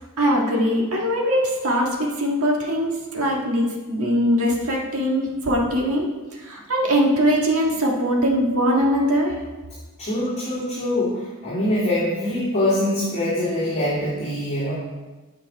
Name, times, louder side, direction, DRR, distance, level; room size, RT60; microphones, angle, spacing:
voice 1, 0.2-9.4, equal, 70° right, -1 dB, 1.6 m, -21 dB
voice 2, 10.0-14.7, left 1 dB, 30° left, -11 dB, 2.9 m, -24 dB
9.4 x 6.2 x 4.5 m, 1.2 s
head